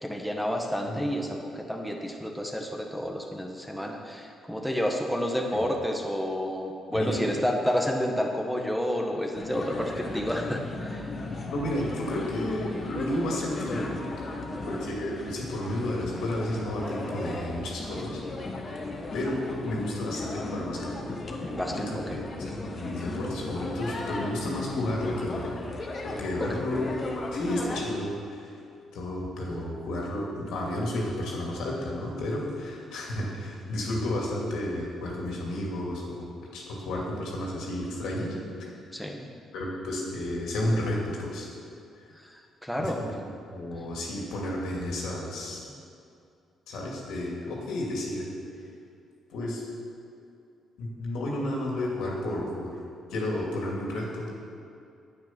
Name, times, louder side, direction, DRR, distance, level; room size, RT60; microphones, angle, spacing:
voice 1, 0.0-11.0 14.5-14.9 21.5-22.2 26.4-26.6 38.9-39.3 42.2-43.0, equal, ahead, 2 dB, 1.2 m, -30 dB
voice 2, 6.9-7.2 11.5-13.9 14.2-14.4 14.6-18.2 19.1-21.1 21.7-22.2 22.5-25.6 26.0-27.0 27.3-28.5 28.9-36.3 36.5-38.3 39.5-41.5 42.8-43.2 43.5-45.6 46.7-48.2 49.3-49.6 50.8-52.8 53.1-54.3, left 1 dB, 85° left, -2 dB, 2.5 m, -32 dB
sound 1, 9.3-27.8, left 2 dB, 40° left, 1.5 m, -36 dB
9.4 x 8.7 x 6.0 m, 2.5 s
cardioid pair, 90°, 0 cm